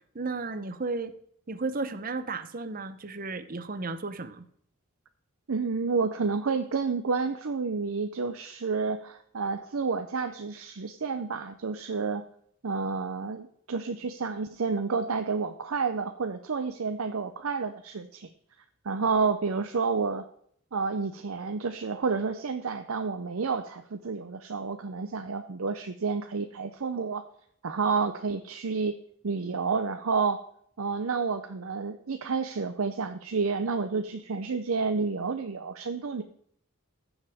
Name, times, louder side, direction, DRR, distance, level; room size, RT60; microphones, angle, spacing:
voice 1, 0.1-1.1 1.5-4.4, right 3 dB, 40° right, 12 dB, 0.7 m, -34 dB
voice 2, 5.5-12.2 12.6-18.3 18.8-20.2 20.7-27.2 27.6-29.0 29.2-30.4 30.8-36.2, right 4 dB, 75° right, 8 dB, 0.6 m, -30 dB
15.0 x 7.1 x 3.5 m, 0.65 s
head